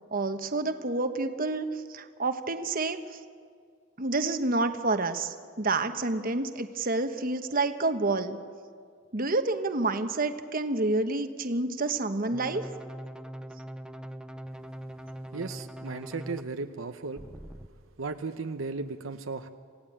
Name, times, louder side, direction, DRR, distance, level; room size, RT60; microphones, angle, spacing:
voice 1, 0.1-3.2 4.0-8.4 9.1-12.7, right 2 dB, 45° right, 8 dB, 1.2 m, -29 dB
sound 1, 12.3-16.4 17.2-17.7, equal, 5° right, 0.7 m, -42 dB
voice 2, 15.3-17.2 18.0-19.5, right 3 dB, 75° right, 7 dB, 0.9 m, -35 dB
27.5 x 17.0 x 8.8 m, 2.1 s
head